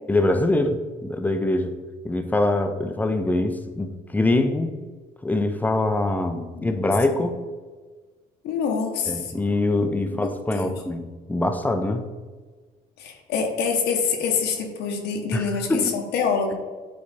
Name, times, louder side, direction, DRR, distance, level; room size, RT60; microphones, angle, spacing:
voice 1, 0.1-1.7 2.0-4.7 5.2-7.4 9.1-12.1 15.3-15.9, left 2 dB, 10° left, 7 dB, 0.6 m, -24 dB
voice 2, 8.4-9.3 10.1-10.7 13.0-16.5, left 5 dB, 80° left, 2 dB, 1.1 m, -26 dB
8.2 x 3.4 x 4.1 m, 1.4 s
cardioid pair, 110°, 17 cm